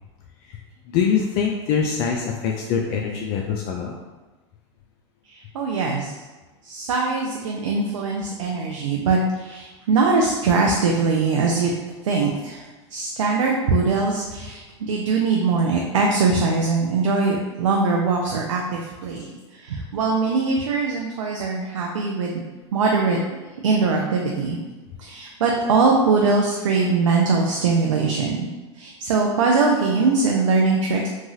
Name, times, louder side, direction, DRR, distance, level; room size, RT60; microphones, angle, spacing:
voice 1, 0.9-3.9, left 6 dB, 50° left, 0 dB, 0.4 m, -23 dB
voice 2, 5.3-6.1 6.6-11.7 12.0-12.6 12.9-22.4 22.7-23.2 23.6-24.6 25.0-28.5 28.8-31.1, right 4 dB, 85° right, -1 dB, 0.4 m, -21 dB
3.0 x 2.4 x 2.7 m, 1.2 s
hypercardioid pair, 105°, 16 cm